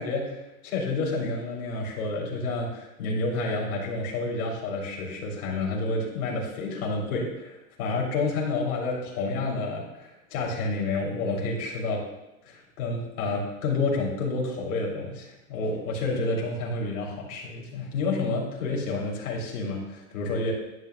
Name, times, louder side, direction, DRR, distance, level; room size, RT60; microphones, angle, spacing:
voice 1, 0.0-12.0 12.4-20.5, left 3 dB, 70° left, -2 dB, 3.3 m, -29 dB
10.5 x 10.5 x 2.4 m, 0.95 s
supercardioid pair, 140°, 46 cm